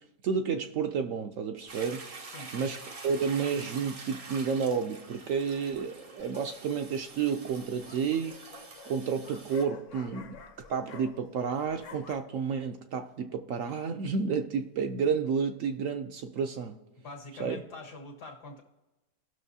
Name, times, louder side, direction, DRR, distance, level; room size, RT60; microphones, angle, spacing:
voice 1, 0.2-2.1 2.5-10.4 10.7-16.8 17.4-17.6, right 6 dB, 65° right, 6 dB, 0.8 m, -31 dB
Toilet flush, 1.7-9.6, right 3 dB, 50° right, 0.4 m, -46 dB
voice 2, 2.3-2.7 17.0-18.6, left 2 dB, 80° left, 0 dB, 2.1 m, -45 dB
sound 1, 6.2-6.6 7.5-11.4 11.7-12.1, left 6 dB, 55° left, 1.1 m, -50 dB
17.5 x 6.2 x 2.7 m, 1.1 s
omnidirectional pair, 1.7 m